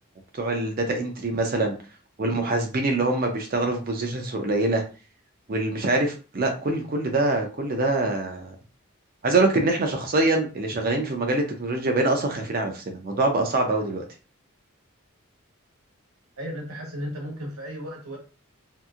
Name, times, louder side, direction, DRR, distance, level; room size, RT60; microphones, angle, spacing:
voice 1, 0.3-1.7 2.2-4.8 5.5-8.6 9.2-14.0, right 2 dB, 45° right, 3 dB, 0.5 m, -24 dB
voice 2, 16.4-18.2, equal, 90° right, -1 dB, 1.1 m, -34 dB
2.8 x 2.5 x 2.4 m, 0.35 s
head